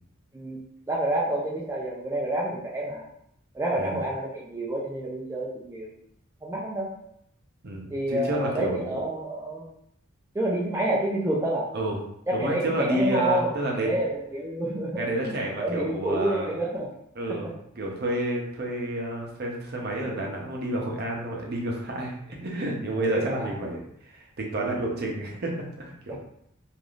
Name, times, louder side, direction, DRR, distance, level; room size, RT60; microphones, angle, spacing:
voice 1, 0.9-3.1 3.5-5.9 6.4-6.9 7.9-9.7 10.3-11.7 12.3-16.9 17.4-17.5 23.0-23.5 26.1-26.2, right 1 dB, 15° right, -4 dB, 0.4 m, -28 dB
voice 2, 7.6-9.1 11.7-12.0 12.3-14.0 14.9-16.5 17.2-26.2, right 1 dB, 55° right, -1 dB, 0.6 m, -30 dB
3.3 x 2.5 x 2.4 m, 0.73 s
head